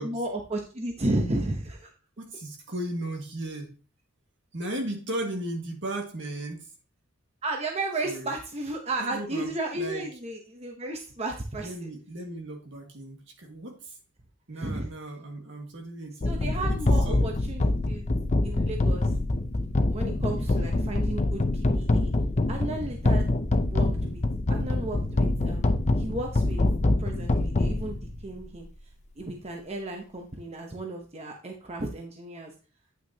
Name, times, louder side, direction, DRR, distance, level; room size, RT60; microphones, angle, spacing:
voice 1, 0.0-1.9 7.4-11.9 14.6-14.9 16.2-18.1 18.4-19.1 19.9-22.1 22.5-23.2 23.7-24.2 24.5-26.6 27.0-28.7 29.2-32.5, right 2 dB, 30° right, 2 dB, 0.9 m, -33 dB
voice 2, 2.2-3.7 4.5-6.7 8.0-8.4 9.0-10.2 11.6-14.0 14.5-17.3 20.2-20.7, right 1 dB, 65° right, 3 dB, 1.8 m, -36 dB
sound 1, 16.2-28.3, left 2 dB, 35° left, 0.6 m, -25 dB
9.1 x 5.8 x 2.8 m, 0.36 s
head